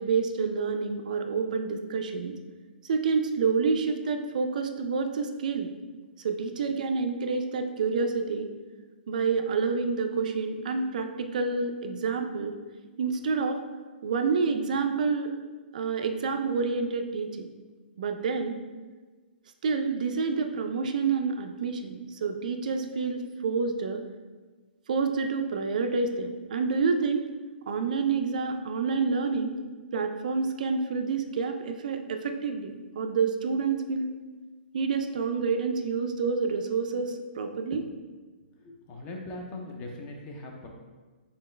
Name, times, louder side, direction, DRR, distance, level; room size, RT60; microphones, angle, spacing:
voice 1, 0.0-2.3 2.8-5.7 6.2-8.5 9.1-12.5 13.0-13.6 14.0-15.3 15.7-17.5 18.0-18.6 19.6-24.0 24.9-27.2 27.7-29.5 29.9-34.1 34.7-37.8, right 4 dB, 45° right, 6 dB, 0.4 m, -28 dB
voice 2, 38.6-40.7, left 2 dB, 15° left, 1 dB, 0.4 m, -40 dB
4.2 x 3.9 x 3.2 m, 1.3 s
hypercardioid pair, 170°, 6 cm